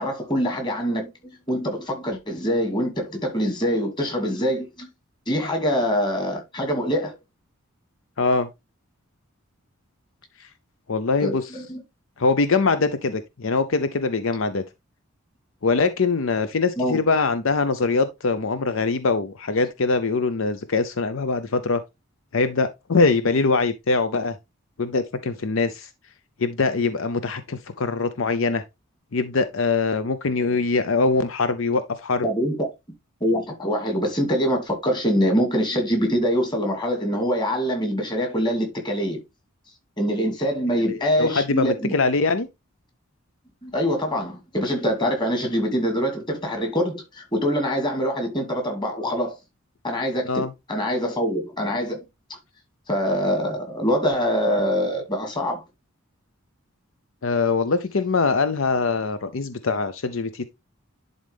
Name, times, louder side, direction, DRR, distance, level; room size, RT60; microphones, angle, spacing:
voice 1, 0.0-4.9 5.3-7.2 11.2-11.8 16.8-17.0 32.2-32.7 33.2-39.2 40.0-41.9 43.6-49.4 49.8-52.0 52.9-55.6, equal, 20° left, 2.3 m, -24 dB
voice 2, 8.2-8.5 10.4-10.5 10.9-11.5 12.2-14.6 15.6-21.8 22.3-24.3 24.8-25.9 26.4-28.6 29.1-32.3 40.8-42.5 50.2-50.5 57.2-60.4, left 4 dB, 65° left, 0.6 m, -23 dB
11.0 x 3.9 x 3.5 m
head